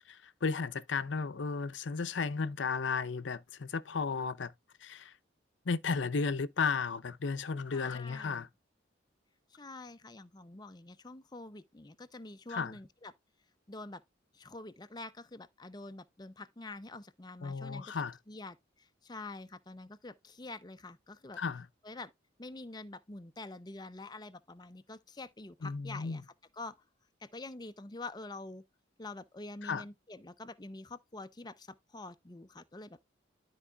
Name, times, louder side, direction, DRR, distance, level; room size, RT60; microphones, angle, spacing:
voice 1, 0.1-4.5 4.8-5.1 5.7-8.5 12.5-12.7 17.4-18.2 21.4-21.7 25.6-26.2 29.6-29.8, left 5 dB, 75° left, 0.6 m, -34 dB
voice 2, 7.7-8.5 9.5-13.1 13.7-14.0 14.3-21.4 21.8-22.1 22.4-26.2 26.5-26.8 27.2-28.6 29.0-31.7 31.9-33.0, left 2 dB, 20° left, 0.6 m, -46 dB
12.5 x 4.7 x 2.3 m
head